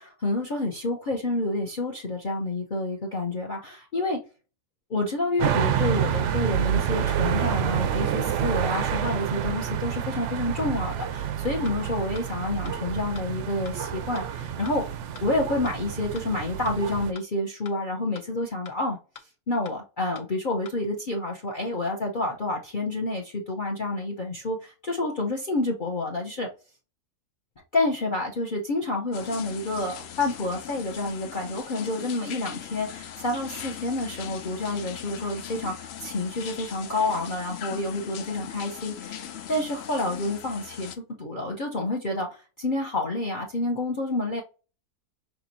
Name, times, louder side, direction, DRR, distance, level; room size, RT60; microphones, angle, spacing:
voice 1, 0.0-4.2 4.9-14.8 15.2-19.0 19.5-26.5 27.7-40.9 41.2-44.4, left 2 dB, 40° left, 0.8 m, -29 dB
sound 1, 5.4-17.1, right 9 dB, 70° right, 0.7 m, -28 dB
sound 2, 11.7-11.8 12.1-12.2 12.6-12.7 13.1-13.2 13.7-13.8 14.2-14.3 14.7-14.8 15.1-15.2 15.6-15.7 16.1-16.2 16.7-16.8 17.2-17.3 17.7-17.8 18.1-18.2 18.6-18.7 19.1-19.2 19.7-19.8 20.2-20.3 20.7-20.8, left 7 dB, 65° left, 1.1 m, -44 dB
sound 3, 29.1-41.0, left 9 dB, 80° left, 0.5 m, -40 dB
6.0 x 3.2 x 2.7 m
omnidirectional pair, 1.7 m